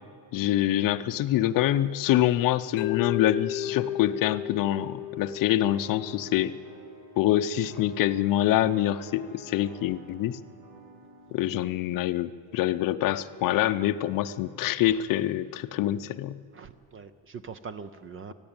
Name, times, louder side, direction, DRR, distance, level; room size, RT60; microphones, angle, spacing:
voice 1, 0.3-6.6 7.2-10.4 11.3-16.4, left 13 dB, 45° left, 12 dB, 0.6 m, -25 dB
Mallet percussion, 2.8-6.9, left 12 dB, 90° left, 0.9 m, -35 dB
sound 1, 3.6-11.4, right 2 dB, 60° right, 7.4 m, -48 dB
voice 2, 16.5-18.3, right 5 dB, 30° right, 14 dB, 0.4 m, -42 dB
28.0 x 10.5 x 8.8 m, 2.4 s
cardioid pair, 175°, 46 cm